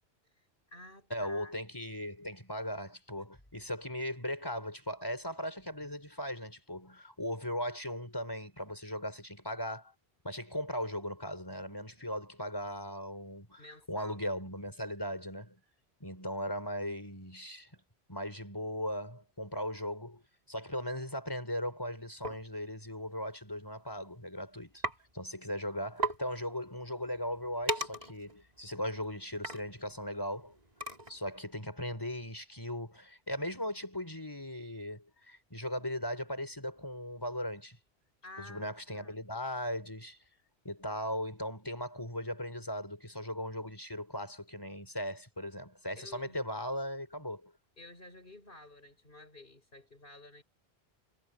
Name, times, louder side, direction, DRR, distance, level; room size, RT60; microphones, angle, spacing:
voice 1, 0.4-1.5 3.2-3.3 13.6-14.2 38.2-39.2 46.0-46.4 47.8-50.4, left 2 dB, 55° left, 7.3 m, -52 dB
voice 2, 1.1-9.9 10.2-13.6 13.9-15.6 16.0-17.7 18.1-20.2 20.5-24.8 25.1-30.6 31.1-37.8 38.4-40.2 40.6-47.5, equal, 20° left, 4.8 m, -38 dB
sound 1, 22.2-22.4 23.5-23.7 24.0-24.3 24.8-25.0 25.3-25.4 25.7-25.8 26.0-26.2 26.7-31.3, right 2 dB, 40° right, 4.3 m, -38 dB
omnidirectional pair, 1.1 m